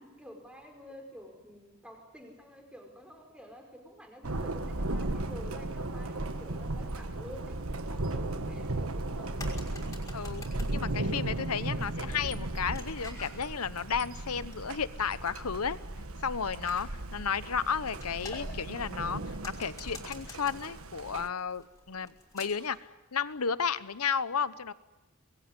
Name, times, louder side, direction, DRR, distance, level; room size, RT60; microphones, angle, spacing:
voice 1, 0.0-7.5 7.9-9.4, equal, 5° right, 3 dB, 5.1 m, -49 dB
Thunder, 4.2-21.3, right 2 dB, 70° right, 1.5 m, -36 dB
sound 1, 9.0-22.8, left 2 dB, 15° left, 5.6 m, -51 dB
voice 2, 10.1-15.8 16.2-22.8 23.1-24.7, left 6 dB, 90° left, 15 dB, 1.0 m, -33 dB
25.0 x 21.5 x 9.9 m, 1.1 s
head